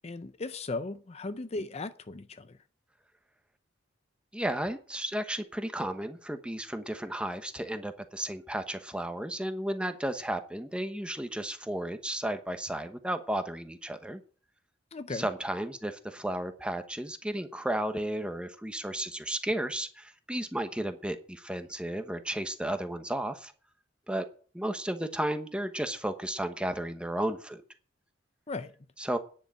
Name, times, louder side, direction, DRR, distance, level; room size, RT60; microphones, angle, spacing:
voice 1, 0.0-2.6 14.9-15.3 28.5-28.7, left 3 dB, 30° left, 0.6 m, -37 dB
voice 2, 4.3-14.2 15.1-23.5 24.1-24.3 24.5-27.6 29.0-29.2, right 1 dB, 5° right, 1.0 m, -33 dB
10.0 x 6.7 x 8.9 m
head